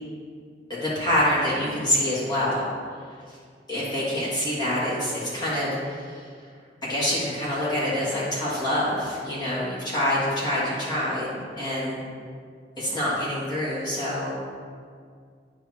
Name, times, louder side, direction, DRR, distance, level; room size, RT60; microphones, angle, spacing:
voice 1, 0.7-2.7 3.3-3.4 3.7-6.3 6.8-12.0 12.8-14.4, left 1 dB, 25° left, -9 dB, 1.6 m, -26 dB
9.4 x 4.5 x 3.4 m, 2.1 s
head